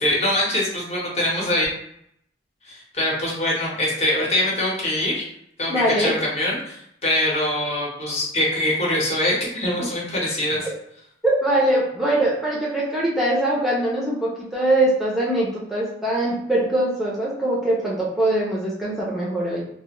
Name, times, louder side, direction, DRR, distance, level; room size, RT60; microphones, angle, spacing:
voice 1, 0.0-1.7 2.6-5.3 5.6-10.7, left 1 dB, 40° left, -3 dB, 0.8 m, -23 dB
voice 2, 5.7-6.1 11.2-19.6, right 1 dB, ahead, -6 dB, 0.5 m, -22 dB
2.4 x 2.3 x 2.9 m, 0.73 s
head